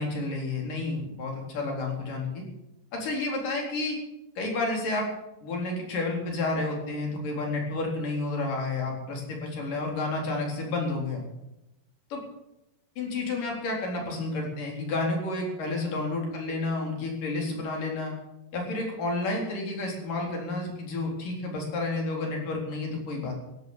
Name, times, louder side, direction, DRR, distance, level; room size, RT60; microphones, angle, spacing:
voice 1, 0.0-2.4 2.9-4.0 4.4-5.1 5.4-11.2 12.1-12.2 13.0-18.1 18.5-23.3, left 2 dB, 60° left, 0 dB, 5.6 m, -30 dB
15.5 x 12.5 x 7.3 m, 0.92 s
omnidirectional pair, 4.2 m